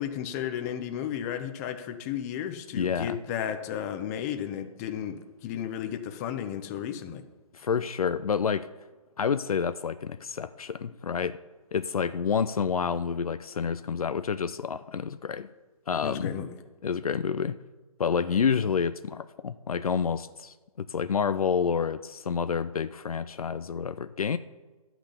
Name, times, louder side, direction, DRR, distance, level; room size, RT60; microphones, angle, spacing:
voice 1, 0.0-7.2 16.0-16.5, left 9 dB, 25° left, 8 dB, 0.9 m, -33 dB
voice 2, 2.7-3.2 7.5-8.7 9.2-11.4 11.7-15.5 15.9-16.3 16.8-17.6 18.0-24.4, left 6 dB, 70° left, 12 dB, 0.6 m, -28 dB
11.5 x 6.0 x 8.3 m, 1.3 s
figure-of-eight pair, 140°, 19 cm